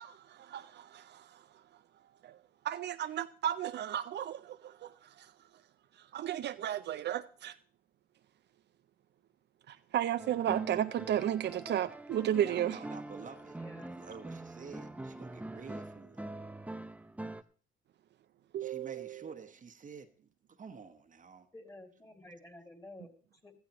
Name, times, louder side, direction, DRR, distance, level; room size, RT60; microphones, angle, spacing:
voice 1, 0.0-1.4 2.2-2.4 2.6-4.9 5.2-5.3 6.1-7.6 9.7-12.8 18.5-19.1, right 11 dB, 60° right, 0.4 m, -34 dB
sound 1, 10.2-17.4, right 2 dB, 5° right, 0.5 m, -44 dB
voice 2, 12.4-13.6 13.9-16.2 18.6-20.1 20.5-21.5, right 5 dB, 40° right, 1.0 m, -49 dB
voice 3, 13.6-14.0 21.5-23.5, left 1 dB, 15° left, 2.3 m, -52 dB
15.5 x 14.0 x 2.9 m
cardioid pair, 90°, 20 cm